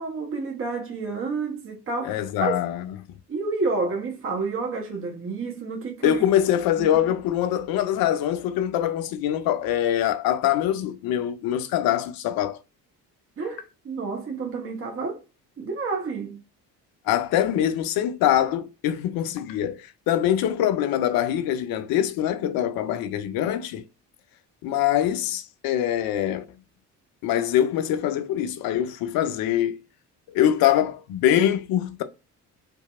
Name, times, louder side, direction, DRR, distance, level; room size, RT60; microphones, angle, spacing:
voice 1, 0.0-2.6 3.3-6.2 6.8-6.9 13.4-15.2 15.6-16.4, right 4 dB, 30° right, 0.9 m, -30 dB
voice 2, 2.0-3.0 6.0-12.6 17.1-23.8 24.6-26.4 27.2-29.8 30.3-32.0, left 11 dB, 50° left, 0.5 m, -24 dB
2.7 x 2.2 x 2.3 m
figure-of-eight pair, 50°, 48 cm